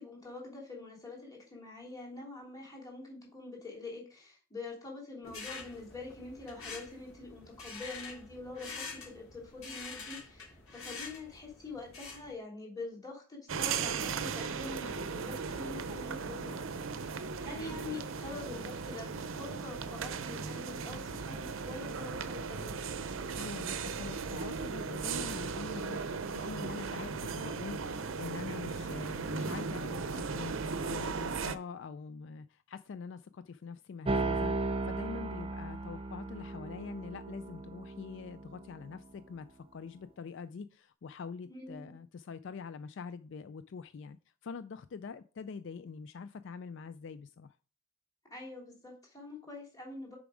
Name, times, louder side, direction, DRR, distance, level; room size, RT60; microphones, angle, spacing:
voice 1, 0.0-16.6 17.0-22.8 41.4-42.0 48.3-50.2, left 3 dB, 20° left, 3.1 m, -45 dB
sound 1, 5.2-12.3, left 4 dB, 85° left, 3.4 m, -46 dB
sound 2, 13.5-31.5, right 5 dB, 70° right, 0.6 m, -37 dB
voice 2, 23.4-44.2 44.4-47.6, left 5 dB, 60° left, 0.4 m, -44 dB
sound 3, 34.0-39.0, right 2 dB, 25° right, 0.5 m, -36 dB
6.9 x 5.1 x 4.9 m
head